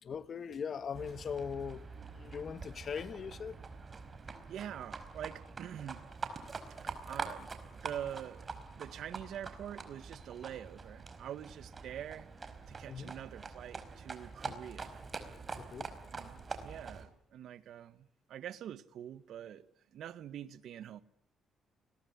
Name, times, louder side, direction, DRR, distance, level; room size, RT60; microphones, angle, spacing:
voice 1, 0.0-1.9 2.1-3.6 12.9-13.1 14.4-14.5 15.6-15.9, left 6 dB, 50° left, 1.7 m, -40 dB
Livestock farm animals working animals, 0.9-17.1, right 4 dB, 35° right, 4.8 m, -45 dB
voice 2, 4.5-6.1 6.8-12.3 12.7-15.0 16.1-19.6 19.9-21.0, right 10 dB, 75° right, 1.5 m, -45 dB
29.0 x 21.0 x 9.7 m
cardioid pair, 90°, 0 cm